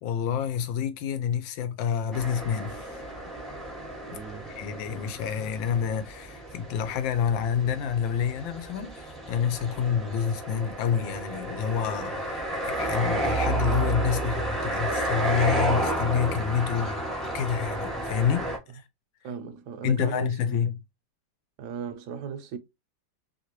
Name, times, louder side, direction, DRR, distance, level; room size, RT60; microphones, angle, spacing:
voice 1, 0.0-3.0 4.6-17.1 17.3-18.8 19.8-20.7, left 8 dB, 80° left, 1.4 m, -28 dB
sound 1, 2.1-18.6, right 1 dB, ahead, 0.4 m, -31 dB
voice 2, 4.1-4.5 19.2-20.6 21.6-22.6, right 6 dB, 70° right, 1.0 m, -37 dB
3.3 x 2.7 x 2.9 m
omnidirectional pair, 2.1 m